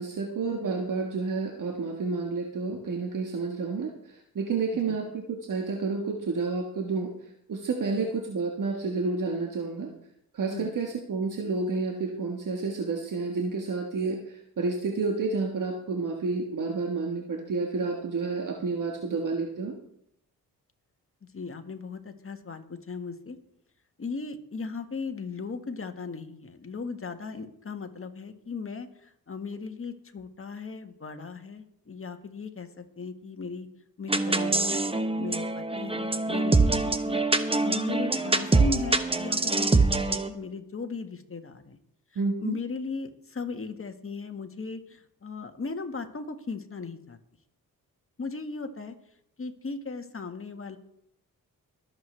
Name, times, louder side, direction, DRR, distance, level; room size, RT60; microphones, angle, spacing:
voice 1, 0.0-7.1 7.5-9.9 10.3-19.7 42.1-42.6, right 4 dB, 55° right, 1 dB, 1.6 m, -30 dB
voice 2, 21.3-23.4 24.0-33.7 34.0-41.8 42.1-47.2 48.2-48.9 49.4-50.8, left 4 dB, 35° left, 6 dB, 1.7 m, -37 dB
sound 1, 34.1-40.3, right 3 dB, 15° right, 1.1 m, -24 dB
23.5 x 7.9 x 3.4 m, 0.76 s
supercardioid pair, 55°, 36 cm